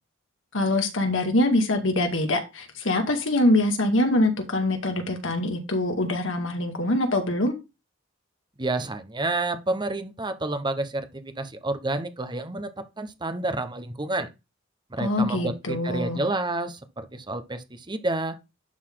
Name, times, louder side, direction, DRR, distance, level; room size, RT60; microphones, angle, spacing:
voice 1, 0.5-7.5 15.0-16.2, left 1 dB, 75° left, 2.1 m, -24 dB
voice 2, 8.6-14.3 14.9-18.4, right 2 dB, 25° right, 1.0 m, -29 dB
11.0 x 4.1 x 3.8 m
head